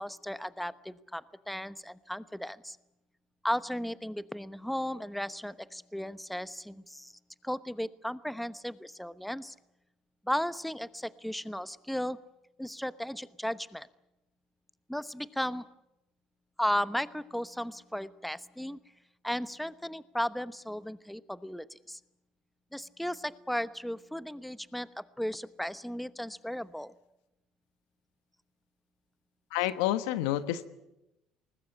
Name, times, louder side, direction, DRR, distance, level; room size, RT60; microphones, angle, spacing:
voice 1, 0.0-2.8 3.4-7.1 7.4-9.5 10.2-12.2 12.6-13.9 14.9-15.6 16.6-18.8 19.2-22.0 22.7-26.9, equal, ahead, 15 dB, 1.0 m, -35 dB
voice 2, 29.5-30.7, left 13 dB, 80° left, 13 dB, 1.2 m, -29 dB
20.5 x 20.0 x 9.8 m, 0.90 s
hypercardioid pair, 65°, 2 cm